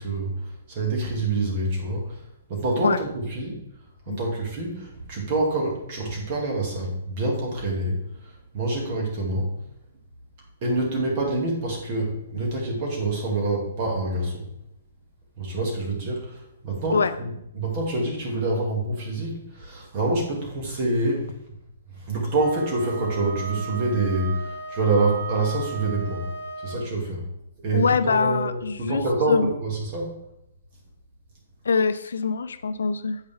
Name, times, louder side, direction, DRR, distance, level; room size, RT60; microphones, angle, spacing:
voice 1, 0.0-3.6 4.1-9.5 10.6-14.5 15.4-21.4 21.9-26.3 26.6-27.3 27.6-30.1, right 2 dB, 40° right, -1 dB, 2.6 m, -26 dB
Wind instrument woodwind instrument, 22.3-26.9, right 4 dB, 60° right, 1.3 m, -36 dB
voice 2, 27.7-29.0 29.3-29.5 31.7-33.2, left 5 dB, 85° left, 11 dB, 0.4 m, -23 dB
8.0 x 5.2 x 3.7 m, 0.79 s
hypercardioid pair, 145°, 0 cm